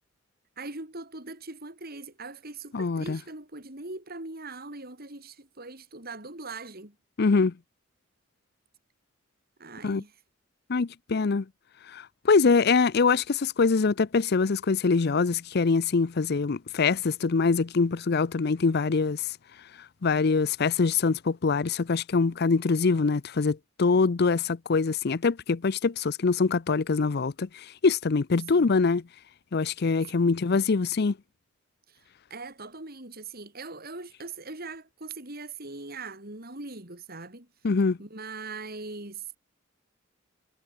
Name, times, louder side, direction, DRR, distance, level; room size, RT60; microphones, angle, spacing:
voice 1, 0.6-6.9 9.6-10.2 28.5-28.7 30.1-30.3 31.9-37.5 38.0-39.4, right 3 dB, 50° right, 4.7 m, -41 dB
voice 2, 2.7-3.2 7.2-7.5 9.8-10.0 10.7-11.4 11.9-19.4 20.0-29.0 29.5-31.2 37.6-38.0, left 4 dB, 55° left, 0.6 m, -24 dB
head